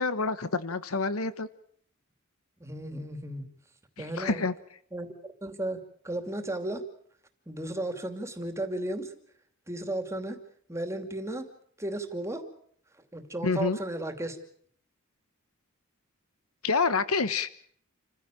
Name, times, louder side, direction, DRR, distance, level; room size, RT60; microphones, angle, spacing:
voice 1, 0.0-1.5 4.0-4.5 13.4-13.8 16.6-17.5, left 4 dB, 85° left, 14 dB, 1.2 m, -27 dB
voice 2, 2.6-3.5 4.0-4.4 4.9-5.1 5.4-5.8 6.0-6.8 7.5-9.1 9.7-10.4 10.7-11.5 11.8-12.4 13.1-14.4, right 1 dB, 15° right, 7 dB, 2.6 m, -34 dB
28.5 x 15.5 x 9.0 m, 0.63 s
head